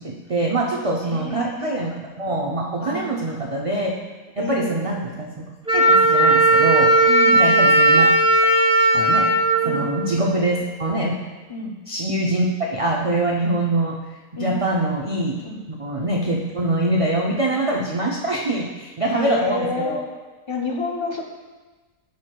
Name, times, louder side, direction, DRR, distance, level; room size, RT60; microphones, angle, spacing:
voice 1, 0.0-3.9 4.4-5.4 5.7-7.1 7.3-8.1 8.9-9.3 9.6-11.2 11.9-14.0 14.4-15.4 15.8-20.0, right 1 dB, 55° right, -2 dB, 0.3 m, -24 dB
voice 2, 1.0-1.9 2.8-3.1 4.4-4.8 7.1-7.7 9.6-9.9 11.5-11.8 14.4-14.6 15.4-15.6 19.0-20.0 20.5-21.2, left 2 dB, 35° left, 0 dB, 0.5 m, -29 dB
Wind instrument woodwind instrument, 5.7-10.5, right 1 dB, 5° right, 0.9 m, -16 dB
9.5 x 6.4 x 2.3 m, 1.3 s
omnidirectional pair, 1.4 m